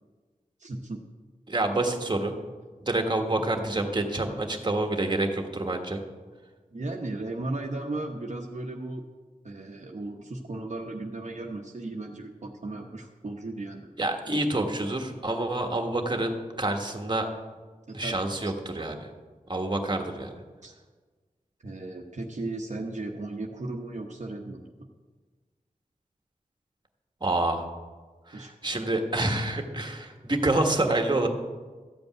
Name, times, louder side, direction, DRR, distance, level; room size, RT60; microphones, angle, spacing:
voice 1, 0.6-1.0 3.3-3.4 6.7-9.0 9.4-13.9 17.9-18.5 20.6-20.7 21.6-24.9 28.3-28.5, right 2 dB, 55° right, 0 dB, 1.0 m, -36 dB
voice 2, 1.5-2.3 2.8-6.0 14.0-17.3 17.9-19.1 19.5-20.3 27.2-27.7 28.3-31.3, right 2 dB, 30° right, 4 dB, 1.5 m, -27 dB
13.5 x 5.3 x 9.1 m, 1.4 s
wide cardioid pair, 80°, 14 cm